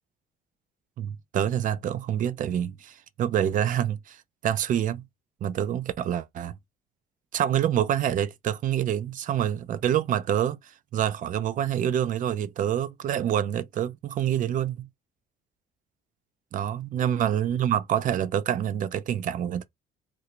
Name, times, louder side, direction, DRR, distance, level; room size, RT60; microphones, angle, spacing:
voice 1, 1.0-4.2 4.4-5.0 5.4-6.5 7.3-10.6 10.9-14.9 16.5-19.6, right 10 dB, 50° right, 0.5 m, -26 dB
3.2 x 2.6 x 2.9 m
cardioid pair, 110°, 17 cm